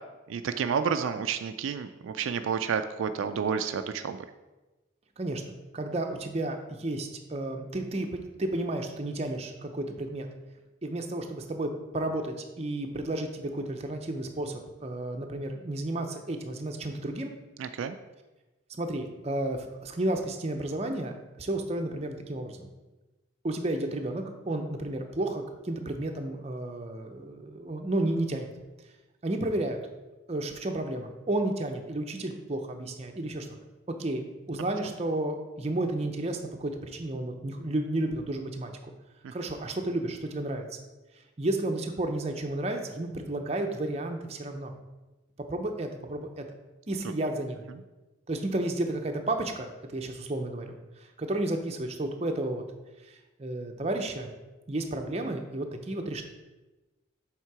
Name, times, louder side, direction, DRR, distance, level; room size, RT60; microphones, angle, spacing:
voice 1, 0.3-4.2 17.6-18.0 39.2-39.3, right 6 dB, 80° right, 9 dB, 0.3 m, -30 dB
voice 2, 5.7-10.3 10.8-17.3 18.7-22.7 23.4-28.5 29.2-29.8 30.3-33.5 34.0-38.7 39.3-40.7 41.4-44.7 45.5-46.4 46.9-47.7 48.3-50.8 51.2-52.6 53.0-53.1 53.4-54.3 54.7-56.2, right 1 dB, 30° right, 4 dB, 0.6 m, -32 dB
7.4 x 3.6 x 4.7 m, 1.1 s
head